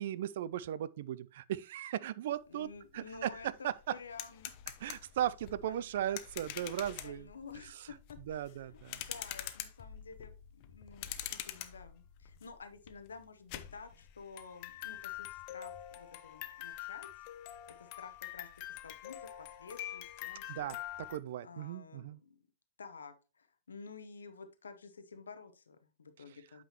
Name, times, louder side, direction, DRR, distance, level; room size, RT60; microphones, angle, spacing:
voice 1, 0.0-3.7 4.8-7.3 8.3-9.0 20.5-22.2, right 11 dB, 55° right, 0.4 m, -37 dB
voice 2, 2.5-4.5 5.4-5.9 6.6-6.8 7.0-17.1 17.7-18.5 18.8-20.8 21.4-22.4 22.8-26.6, left 5 dB, 70° left, 0.9 m, -51 dB
sound 1, 2.8-2.9 3.2-21.2, left 13 dB, 45° left, 0.7 m, -45 dB
8.4 x 5.5 x 2.9 m
figure-of-eight pair, 100°, 0 cm